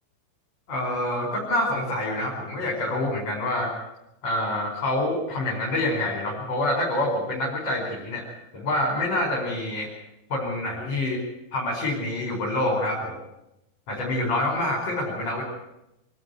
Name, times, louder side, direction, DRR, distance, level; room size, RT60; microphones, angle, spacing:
voice 1, 0.7-3.7 4.2-9.9 10.3-11.2 11.5-13.2 13.9-15.4, left 1 dB, 45° left, -3 dB, 5.9 m, -26 dB
26.0 x 12.5 x 9.7 m, 0.88 s
omnidirectional pair, 4.3 m